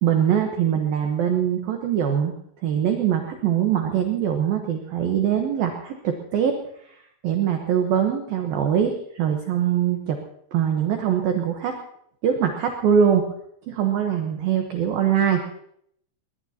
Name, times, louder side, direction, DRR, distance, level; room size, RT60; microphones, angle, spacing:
voice 1, 0.0-2.3 2.6-6.5 6.8-10.2 10.5-11.8 12.2-13.2 13.7-15.6, right 8 dB, 80° right, 4 dB, 2.1 m, -22 dB
21.0 x 20.5 x 2.9 m, 0.71 s
omnidirectional pair, 6.0 m